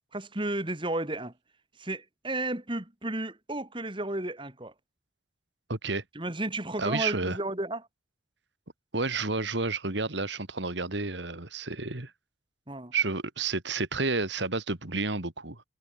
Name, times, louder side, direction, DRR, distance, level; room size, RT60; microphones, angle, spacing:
voice 1, 0.1-1.3 1.8-4.7 6.1-7.9 12.7-12.9, right 2 dB, 25° right, 2.3 m, -33 dB
voice 2, 5.7-6.0 6.8-7.4 8.9-12.1 12.9-15.6, right 3 dB, 70° right, 2.5 m, -30 dB
head